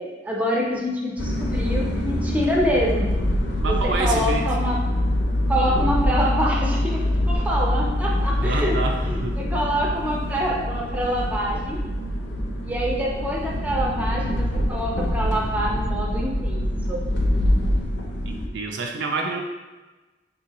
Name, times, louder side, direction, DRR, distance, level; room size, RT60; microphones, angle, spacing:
voice 1, 0.0-3.1 3.6-4.8 5.5-8.7 9.0-11.8 12.6-16.6 16.9-17.0, equal, 10° right, -3 dB, 0.5 m, -26 dB
sound 1, 1.2-18.5, left 1 dB, 70° left, 0.6 m, -24 dB
voice 2, 3.6-4.5 8.3-9.4 18.2-19.4, right 3 dB, 80° right, 2 dB, 0.4 m, -28 dB
3.6 x 2.7 x 2.9 m, 1.2 s
head